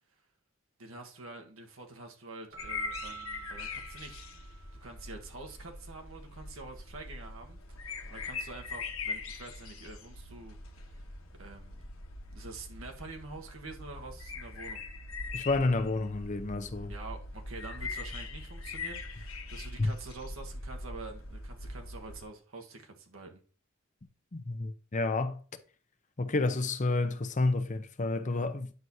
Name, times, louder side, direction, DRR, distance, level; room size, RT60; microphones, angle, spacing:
voice 1, 0.8-4.3 4.8-11.0 11.4-11.8 12.3-14.8 16.9-23.4, right 3 dB, 90° right, 1.4 m, -47 dB
Keyboard (musical), 2.5-4.9, right 7 dB, 60° right, 1.5 m, -46 dB
sound 1, 2.6-22.2, left 3 dB, 80° left, 1.2 m, -42 dB
voice 2, 15.3-16.9 19.8-19.9 24.3-25.4 26.2-28.7, left 3 dB, 40° left, 0.7 m, -30 dB
9.4 x 6.2 x 2.8 m
head